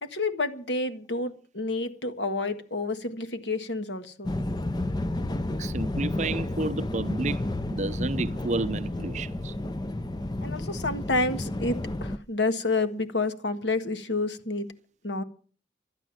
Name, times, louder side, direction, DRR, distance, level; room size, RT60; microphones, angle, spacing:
voice 1, 0.0-4.3 10.4-14.7 15.0-15.2, left 3 dB, 80° left, 1.6 m, -29 dB
sound 1, 4.2-12.2, left 1 dB, 25° left, 0.6 m, -31 dB
voice 2, 5.6-7.4 7.7-9.5, right 3 dB, 40° right, 0.6 m, -31 dB
12.5 x 11.0 x 7.6 m
head